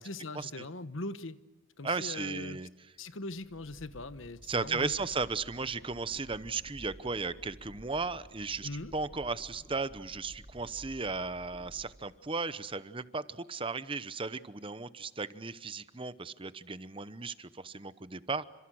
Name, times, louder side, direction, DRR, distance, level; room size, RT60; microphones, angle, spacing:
voice 1, 0.0-1.4 1.8-2.6 3.0-4.9 8.6-8.9, left 2 dB, 65° left, 1.2 m, -41 dB
voice 2, 1.8-2.7 4.5-18.4, right 4 dB, 25° right, 0.9 m, -35 dB
sound 1, 3.1-12.6, equal, 20° left, 3.1 m, -53 dB
30.0 x 26.0 x 6.4 m
head